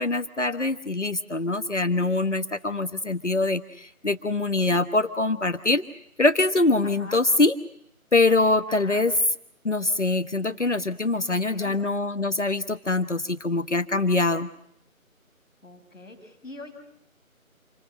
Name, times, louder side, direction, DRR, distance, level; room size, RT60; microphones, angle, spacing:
voice 1, 0.0-5.8 6.2-7.5 8.1-9.1 9.6-14.5, left 2 dB, 55° left, 10 dB, 1.3 m, -24 dB
voice 2, 6.8-7.3 8.7-9.1 11.1-11.8 15.6-16.7, left 2 dB, ahead, -14 dB, 2.3 m, -43 dB
28.5 x 20.0 x 7.7 m, 0.76 s
figure-of-eight pair, 165°, 42 cm